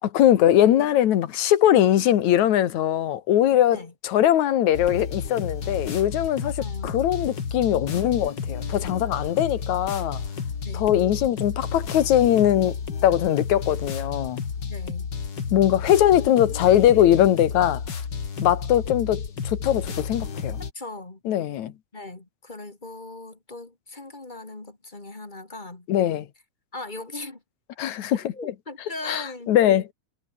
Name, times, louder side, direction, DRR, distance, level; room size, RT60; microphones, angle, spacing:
voice 1, 0.1-6.5 6.8-10.2 10.7-12.7 13.0-14.4 15.5-17.8 18.4-20.6 21.3-21.7 25.9-26.3 27.8-28.5 29.1-29.9, left 11 dB, 65° left, 2.7 m, -21 dB
sound 1, 4.7-20.7, left 6 dB, 40° left, 2.5 m, -31 dB
voice 2, 6.4-7.0 10.6-10.9 14.6-15.1 20.7-21.2 21.9-25.9 26.7-27.4 28.1-29.5, left 2 dB, 15° left, 2.2 m, -39 dB
omnidirectional pair, 3.6 m